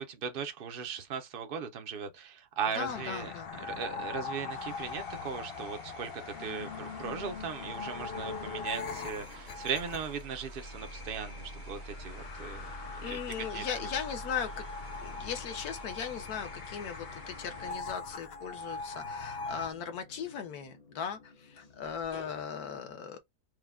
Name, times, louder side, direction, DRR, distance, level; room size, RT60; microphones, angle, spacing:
voice 1, 0.0-12.7 13.0-13.2 13.5-13.9, right 6 dB, 60° right, 0.5 m, -38 dB
voice 2, 2.7-3.7 13.0-14.6 15.0-23.2, left 7 dB, 70° left, 1.4 m, -38 dB
sound 1, 2.9-19.7, left 4 dB, 85° left, 0.5 m, -41 dB
sound 2, 4.5-17.8, right 5 dB, 85° right, 1.6 m, -54 dB
sound 3, 5.4-6.2 6.5-22.4, equal, 40° left, 0.5 m, -50 dB
4.7 x 2.2 x 3.5 m
omnidirectional pair, 1.8 m